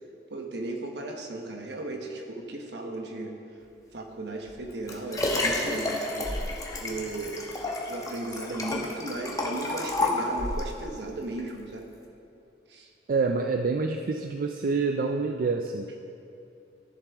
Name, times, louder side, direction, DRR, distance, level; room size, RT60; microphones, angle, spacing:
voice 1, 0.3-3.3 3.9-6.3 6.8-7.4 7.9-11.9 12.7-12.9, right 2 dB, 70° right, 2 dB, 1.1 m, -36 dB
Liquid, 4.5-10.7 11.4-11.5, left 2 dB, 20° left, 1.0 m, -30 dB
voice 2, 13.1-16.0, right 4 dB, 50° right, 5 dB, 0.4 m, -27 dB
14.5 x 6.9 x 3.6 m, 2.7 s
head